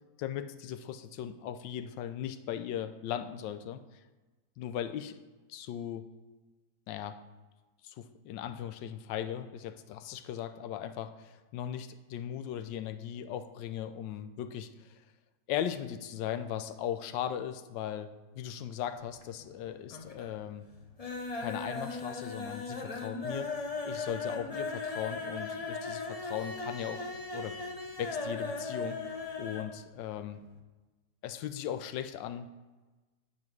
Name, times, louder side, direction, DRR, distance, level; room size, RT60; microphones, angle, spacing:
voice 1, 0.2-3.8 4.6-5.2 5.5-6.1 6.9-7.2 7.8-15.0 15.5-18.1 18.4-20.7 21.4-23.5 23.8-27.0 27.3-27.6 28.0-29.0 29.4-30.4 31.2-32.5, left 10 dB, 90° left, 9 dB, 1.3 m, -38 dB
sound 1, 18.9-19.6 19.9-20.4 20.7-29.7 30.0-30.1 30.4-30.5, left 3 dB, 35° left, 0.6 m, -38 dB
9.7 x 4.7 x 6.0 m, 1.2 s
omnidirectional pair, 1.9 m